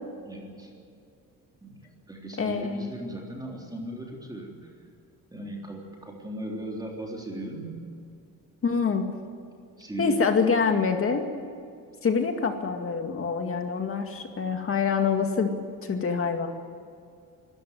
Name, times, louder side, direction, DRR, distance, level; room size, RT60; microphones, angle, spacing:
voice 1, 0.3-0.7 1.6-1.8 2.1-4.7 5.3-7.8 9.8-10.2, right 1 dB, 10° right, -1 dB, 3.6 m, -37 dB
voice 2, 2.4-2.9 8.6-9.0 10.0-11.3 12.0-15.5 15.8-16.5, left 5 dB, 40° left, 5 dB, 2.2 m, -25 dB
25.0 x 14.0 x 9.5 m, 2.3 s
cardioid pair, 145°, 34 cm